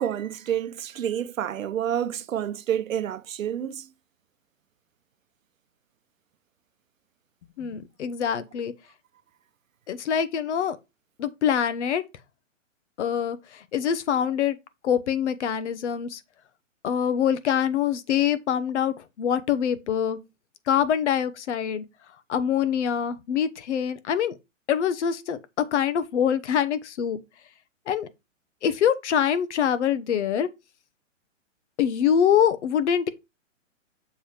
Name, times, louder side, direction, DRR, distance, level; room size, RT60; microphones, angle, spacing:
voice 1, 0.0-3.9, right 9 dB, 90° right, 0.8 m, -29 dB
voice 2, 7.6-8.7 9.9-10.8 11.2-12.0 13.0-14.6 14.8-16.2 16.8-20.2 20.7-21.8 22.3-24.3 24.7-25.4 25.7-27.2 27.9-28.1 28.6-30.5 31.8-33.1, left 8 dB, 60° left, 1.1 m, -24 dB
7.1 x 3.5 x 4.4 m
hypercardioid pair, 140°, 38 cm